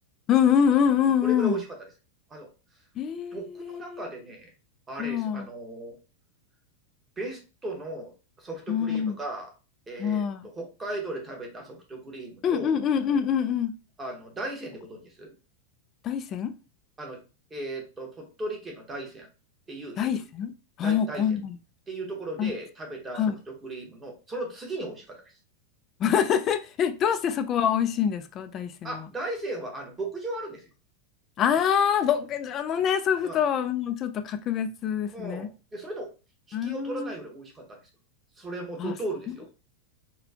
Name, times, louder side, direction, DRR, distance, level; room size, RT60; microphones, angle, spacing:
voice 1, 0.3-1.6 3.0-4.1 5.0-5.5 8.7-9.2 10.0-10.5 12.4-13.7 16.0-16.5 20.0-20.5 20.8-21.6 22.4-22.5 23.1-23.4 26.0-29.0 31.4-35.5 36.5-37.1 38.8-38.9, left 8 dB, 25° left, 0.3 m, -25 dB
voice 2, 1.2-1.9 2.3-2.5 3.3-4.5 4.9-5.9 7.2-9.5 9.9-10.2 10.5-12.8 14.0-15.3 17.0-17.2 17.5-19.3 19.7-20.1 20.8-21.2 21.9-23.2 23.6-25.2 28.8-30.6 33.2-33.4 35.1-36.1 36.5-37.8 38.4-39.5, right 2 dB, 10° right, 0.9 m, -36 dB
4.2 x 2.2 x 2.8 m
supercardioid pair, 170°, 0 cm